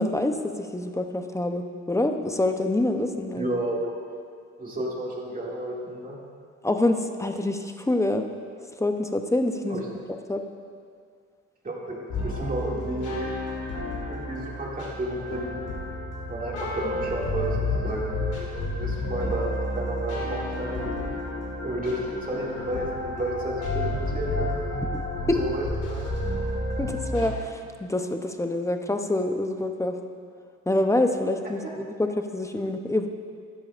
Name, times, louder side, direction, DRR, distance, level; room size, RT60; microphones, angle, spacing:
voice 1, 0.0-3.5 6.6-8.2 8.8-9.8 10.3-10.4 24.9-25.0 25.3-25.4 26.8-30.0 30.7-33.1, left 1 dB, 10° left, 5 dB, 0.7 m, -26 dB
voice 2, 3.3-3.9 4.6-6.2 9.7-9.9 11.6-13.2 14.1-15.7 16.3-17.6 17.8-18.1 18.8-21.1 21.6-24.6 25.2-26.1 31.6-31.7, right 1 dB, 30° right, -3 dB, 2.2 m, -32 dB
sound 1, 12.1-27.3, left 1 dB, 85° left, 2.5 m, -31 dB
12.5 x 10.5 x 2.5 m, 2.1 s
cardioid pair, 90°, 30 cm